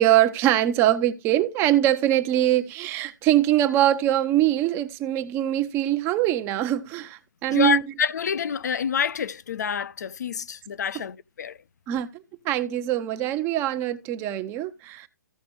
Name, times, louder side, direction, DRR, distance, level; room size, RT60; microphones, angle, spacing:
voice 1, 0.0-7.9 11.9-15.1, right 13 dB, 25° right, 0.8 m, -23 dB
voice 2, 7.5-11.6, left 7 dB, 65° left, 0.8 m, -27 dB
15.0 x 5.1 x 3.1 m
hypercardioid pair, 140°, 10 cm